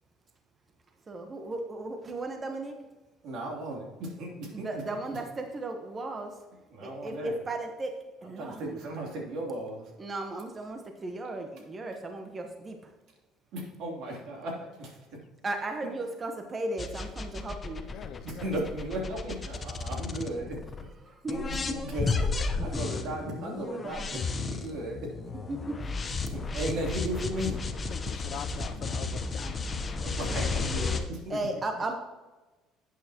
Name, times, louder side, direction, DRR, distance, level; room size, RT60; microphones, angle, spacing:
voice 1, 1.1-2.7 4.5-6.3 6.8-7.9 8.2-8.8 10.0-12.8 15.4-17.8 21.0-21.4 25.5-25.6 31.3-31.9, right 2 dB, 25° right, 1.1 m, -35 dB
voice 2, 3.2-4.7 6.7-7.4 8.4-9.9 13.5-14.9 15.8-15.9 18.2-20.6 21.3-22.2 22.6-24.0 24.4-25.1 26.3-27.6 30.0-31.3, right 1 dB, 65° right, 3.0 m, -36 dB
sound 1, 16.8-20.8 21.3-31.0, left 4 dB, 25° left, 0.9 m, -33 dB
voice 3, 17.9-18.5 22.0-22.1 27.9-30.1 31.3-31.4, left 10 dB, 60° left, 0.5 m, -43 dB
11.0 x 8.6 x 3.0 m
cardioid pair, 110°, 0 cm